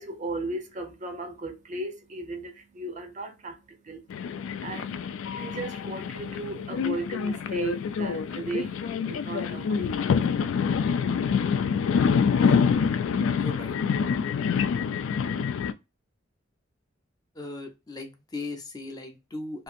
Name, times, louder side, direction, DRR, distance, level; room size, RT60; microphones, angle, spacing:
voice 1, 0.0-10.3, right 2 dB, 40° right, 0.5 m, -36 dB
London Overground Mine the Doors, 4.1-15.7, left 6 dB, 85° left, 0.3 m, -26 dB
voice 2, 13.3-13.8 17.4-19.6, left 2 dB, 20° left, 0.5 m, -38 dB
2.7 x 2.5 x 2.4 m
head